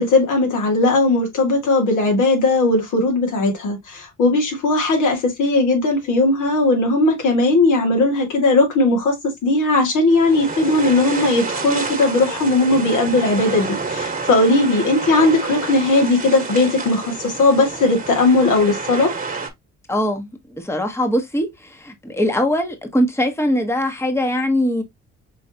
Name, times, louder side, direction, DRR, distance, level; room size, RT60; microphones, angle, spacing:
voice 1, 0.0-9.2 9.4-19.1, left 2 dB, 85° left, 2.3 m, -17 dB
sound 1, 10.1-19.5, right 4 dB, 25° right, 1.4 m, -29 dB
voice 2, 19.9-24.8, left 1 dB, 10° left, 1.1 m, -21 dB
5.5 x 3.1 x 2.8 m
cardioid pair, 90°, 30 cm